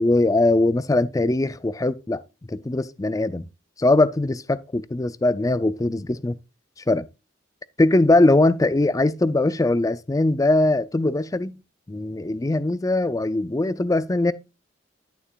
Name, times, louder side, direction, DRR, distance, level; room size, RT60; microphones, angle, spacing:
voice 1, 0.0-2.2 2.5-3.5 3.8-6.4 6.9-7.1 7.8-11.6 11.9-14.3, left 2 dB, 20° left, 0.4 m, -21 dB
11.0 x 6.9 x 2.4 m
head